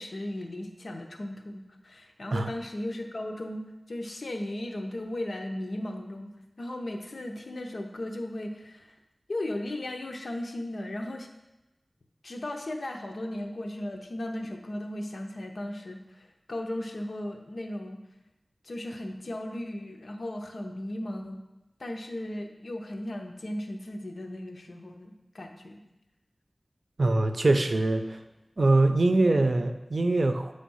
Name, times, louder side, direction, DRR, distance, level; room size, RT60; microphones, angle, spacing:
voice 1, 0.0-3.6 3.9-6.3 6.6-8.9 9.3-11.3 12.2-18.0 18.6-21.4 21.8-25.8, left 1 dB, 75° left, 3 dB, 0.8 m, -36 dB
voice 2, 27.0-28.2 28.6-30.5, right 2 dB, 70° right, 7 dB, 0.5 m, -23 dB
8.3 x 3.3 x 5.5 m, 1.0 s
wide cardioid pair, 65°, 0 cm